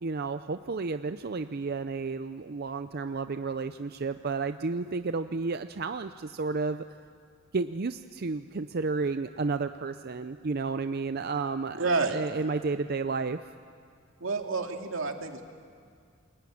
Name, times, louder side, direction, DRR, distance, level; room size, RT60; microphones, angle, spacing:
voice 1, 0.0-6.8 7.5-13.4, right 4 dB, 50° right, 10 dB, 0.6 m, -32 dB
voice 2, 11.8-12.2 14.2-15.4, right 3 dB, 85° right, 4 dB, 2.3 m, -29 dB
29.0 x 22.0 x 8.6 m, 2.2 s
head